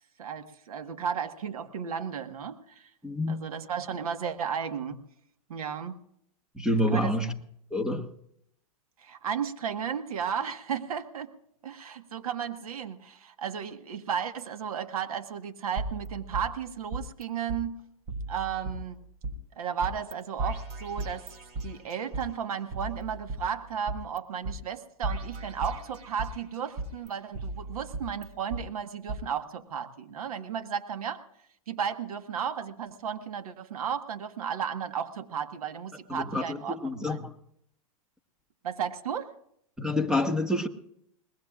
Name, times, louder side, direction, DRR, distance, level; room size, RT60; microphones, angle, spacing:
voice 1, 0.2-2.9 3.3-5.0 5.5-6.0 6.9-7.1 9.0-11.3 11.6-17.8 18.3-19.0 19.5-21.3 21.6-31.2 31.7-37.3 38.6-39.3, right 7 dB, 80° right, 1.6 m, -34 dB
voice 2, 3.0-3.5 6.5-7.3 7.7-8.1 36.1-37.3 39.8-40.7, left 1 dB, 5° right, 1.3 m, -28 dB
sound 1, 15.8-17.2 17.5-17.6 18.1-19.3 19.8-20.1 20.4-22.2 22.7-24.2 24.4-24.6 25.0-26.4 26.8-28.6 29.1-29.2, right 2 dB, 40° right, 3.0 m, -36 dB
23.5 x 20.0 x 2.5 m
hypercardioid pair, 130°, 18 cm